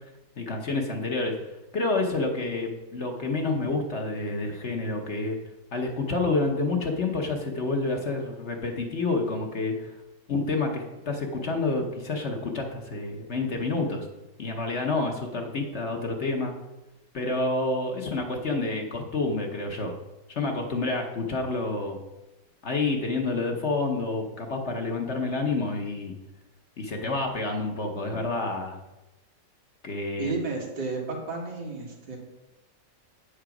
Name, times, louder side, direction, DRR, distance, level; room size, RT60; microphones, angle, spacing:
voice 1, 0.4-1.4 1.7-5.4 5.7-9.9 10.3-14.1 14.4-16.5 17.1-19.9 20.3-22.0 22.6-26.1 26.8-28.8 29.8-30.3, left 3 dB, 50° left, 2 dB, 1.0 m, -28 dB
voice 2, 30.2-32.2, right 3 dB, 90° right, 0 dB, 2.4 m, -32 dB
8.6 x 5.0 x 5.8 m, 1.0 s
omnidirectional pair, 1.9 m